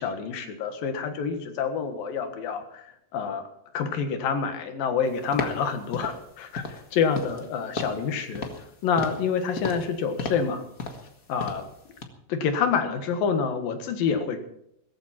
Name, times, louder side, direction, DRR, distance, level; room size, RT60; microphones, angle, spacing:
voice 1, 0.0-2.9 3.1-3.4 3.7-8.5 8.8-10.6 11.3-11.6 12.3-14.4, left 6 dB, 80° left, 7 dB, 3.4 m, -27 dB
sound 1, 5.3-5.6 5.9-6.2 6.6-6.8 7.1-7.5 7.8-8.0 8.3-8.7 9.0-9.3 9.6-9.9 10.2-10.5 10.8-11.1 11.4-11.7 12.0-12.1, left 3 dB, 40° left, 1.2 m, -33 dB
17.0 x 14.5 x 4.4 m, 0.76 s
omnidirectional pair, 4.0 m